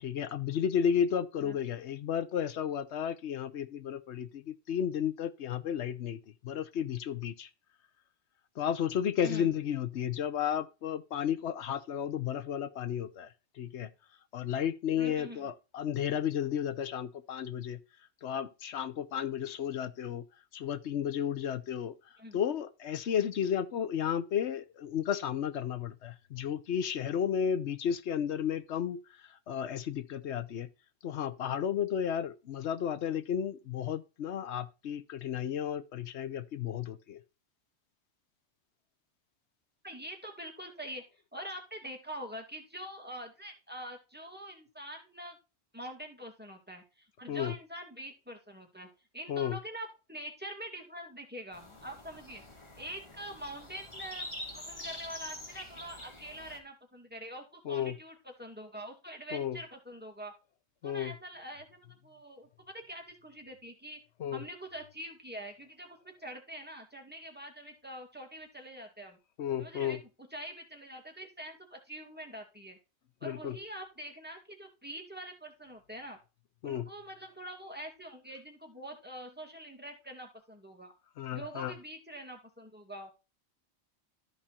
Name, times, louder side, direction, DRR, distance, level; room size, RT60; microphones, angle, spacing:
voice 1, 0.0-7.5 8.6-13.3 13.6-13.9 14.3-17.8 18.2-20.2 20.5-21.9 22.3-29.0 29.5-30.7 31.0-37.2 47.3-47.5 49.3-49.6 57.7-57.9 59.3-59.6 60.8-61.1 64.2-64.4 69.4-70.0 73.2-73.6 76.6-76.9 81.2-81.7, left 8 dB, 90° left, 1.1 m, -33 dB
voice 2, 9.2-9.5 14.9-15.5 22.2-22.4 39.8-41.0 41.3-45.4 45.7-52.4 52.8-54.3 54.5-60.3 60.8-64.0 64.3-69.2 69.6-72.8 73.2-76.2 76.6-80.9 81.3-83.1, equal, 10° right, 2.3 m, -45 dB
sound 1, 51.5-56.6, left 1 dB, 25° left, 1.9 m, -45 dB
13.0 x 5.0 x 4.3 m
omnidirectional pair, 1.1 m